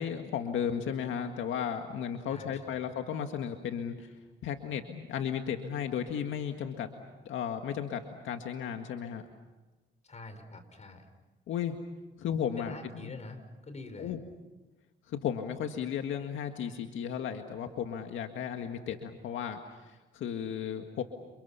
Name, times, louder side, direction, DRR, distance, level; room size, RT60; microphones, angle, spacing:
voice 1, 0.0-4.1 4.4-6.9 7.3-9.2 11.5-11.8 12.2-13.1 14.0-14.2 15.1-19.6 19.9-21.0, left 8 dB, 80° left, 5 dB, 1.9 m, -34 dB
voice 2, 2.3-2.8 10.0-11.1 12.6-14.2, left 2 dB, 35° left, 8 dB, 5.0 m, -46 dB
30.0 x 29.5 x 5.8 m, 1.2 s
cardioid pair, 90°, 20 cm